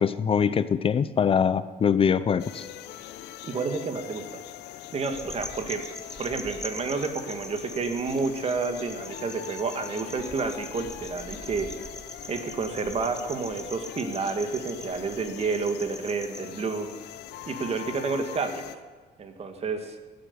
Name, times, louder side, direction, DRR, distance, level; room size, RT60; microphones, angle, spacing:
voice 1, 0.0-2.7, left 7 dB, 35° left, 15 dB, 0.5 m, -23 dB
sound 1, 2.4-18.8, left 12 dB, 80° left, 0.7 m, -42 dB
voice 2, 3.4-4.4 4.9-5.9 6.2-11.7 12.3-16.9 17.5-18.6 19.2-19.9, right 4 dB, 40° right, 7 dB, 1.5 m, -30 dB
sound 2, 5.0-16.4, left 1 dB, 5° left, 1.3 m, -43 dB
16.5 x 8.0 x 6.7 m, 1.4 s
cardioid pair, 110°, 17 cm